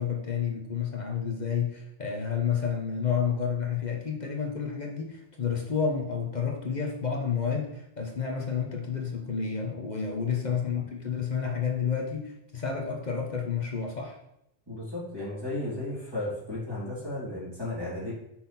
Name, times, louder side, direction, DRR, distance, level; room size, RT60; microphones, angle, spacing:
voice 1, 0.0-14.2, left 6 dB, 40° left, 1 dB, 1.1 m, -30 dB
voice 2, 10.5-10.8 14.7-18.1, left 1 dB, 20° right, -8 dB, 3.1 m, -34 dB
6.1 x 5.9 x 4.2 m, 0.81 s
omnidirectional pair, 1.2 m